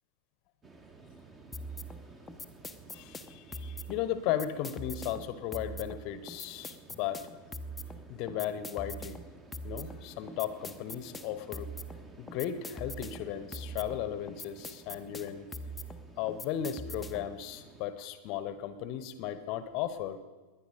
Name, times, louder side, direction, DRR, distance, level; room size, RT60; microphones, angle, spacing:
sound 1, 0.6-17.9, right 3 dB, 20° right, 1.6 m, -55 dB
sound 2, 1.5-17.4, equal, 10° left, 0.8 m, -43 dB
voice 1, 2.9-7.2 8.1-9.2 9.6-11.7 12.2-15.5 16.2-20.2, left 10 dB, 40° left, 13 dB, 1.0 m, -36 dB
21.0 x 9.9 x 5.2 m, 1.3 s
figure-of-eight pair, 90°, 0 cm